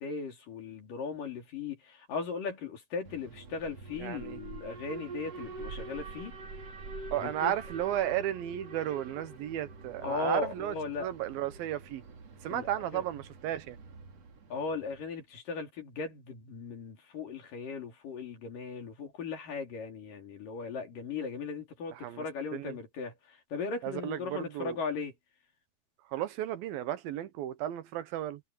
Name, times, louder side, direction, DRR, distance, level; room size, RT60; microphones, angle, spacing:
voice 1, 0.0-6.4 7.2-7.5 10.0-11.1 12.5-13.0 14.5-25.1, left 5 dB, 60° left, 5.1 m, -38 dB
Alarm, 3.0-15.1, right 3 dB, 45° right, 3.4 m, -46 dB
voice 2, 4.0-4.4 7.1-12.0 12.4-13.8 21.9-22.2 22.5-22.8 23.8-24.8 26.1-28.4, right 12 dB, 75° right, 2.9 m, -34 dB
omnidirectional pair, 4.3 m